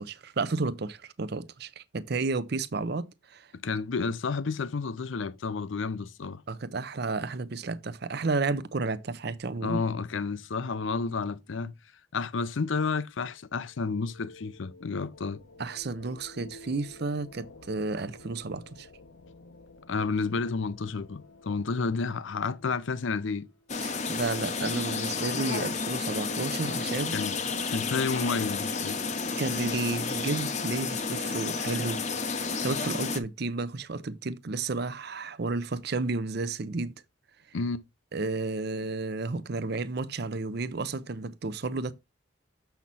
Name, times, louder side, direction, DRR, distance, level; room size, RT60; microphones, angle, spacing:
voice 1, 0.0-3.5 6.5-9.8 15.6-18.9 23.8-27.2 29.4-32.0 32.3-36.9 38.1-41.9, right 3 dB, 50° right, 0.6 m, -32 dB
voice 2, 3.6-6.4 9.6-11.7 12.1-15.4 19.9-23.5 27.1-27.4 27.7-29.0 37.5-37.8, left 4 dB, 70° left, 0.5 m, -31 dB
sound 1, 13.4-23.9, left 2 dB, 90° left, 0.9 m, -53 dB
sound 2, 23.7-33.2, left 4 dB, 35° left, 0.8 m, -31 dB
7.4 x 5.8 x 4.1 m
head